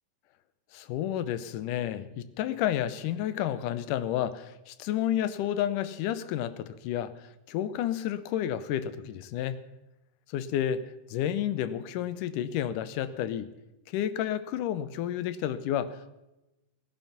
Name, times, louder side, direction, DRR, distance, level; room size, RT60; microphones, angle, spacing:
voice 1, 0.7-7.1 7.5-9.6 10.3-10.8 11.1-13.5 13.9-16.1, left 11 dB, 80° left, 14 dB, 2.3 m, -31 dB
18.5 x 10.5 x 5.8 m, 0.97 s
omnidirectional pair, 3.8 m